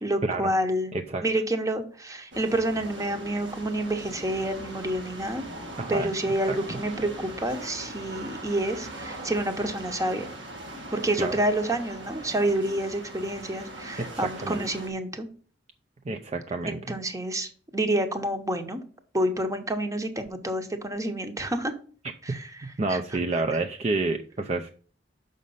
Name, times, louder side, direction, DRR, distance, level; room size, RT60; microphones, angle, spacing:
voice 1, 0.0-0.9 1.2-5.4 5.9-10.3 10.9-15.3 16.7-18.8 19.1-21.7 22.2-23.6, right 1 dB, 20° right, 7 dB, 0.9 m, -28 dB
voice 2, 0.9-1.2 5.8-6.1 6.5-6.8 11.2-11.3 14.0-14.6 16.1-17.0 22.8-24.7, right 3 dB, 35° right, 5 dB, 0.5 m, -29 dB
sound 1, 2.3-14.9, right 1 dB, 85° right, 1.5 m, -40 dB
6.3 x 5.2 x 5.5 m, 0.42 s
head